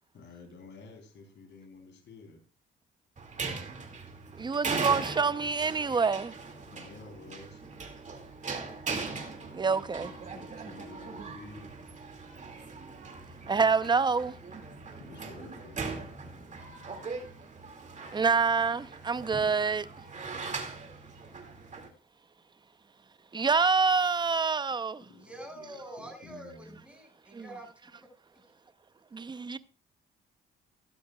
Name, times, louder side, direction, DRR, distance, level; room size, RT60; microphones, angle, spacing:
voice 1, 0.1-2.4 6.7-7.6 10.3-11.7 15.0-15.8 25.1-26.8, left 3 dB, 65° left, 3.4 m, -50 dB
sound 1, 3.2-21.9, right 4 dB, 35° right, 2.3 m, -40 dB
voice 2, 4.4-6.3 9.5-10.1 13.5-14.3 18.1-19.9 23.3-25.1 27.3-27.4 29.1-29.6, right 5 dB, 20° right, 0.7 m, -26 dB
voice 3, 25.0-28.5, right 1 dB, 5° right, 5.7 m, -47 dB
16.0 x 12.5 x 2.4 m
cardioid pair, 90°, 20 cm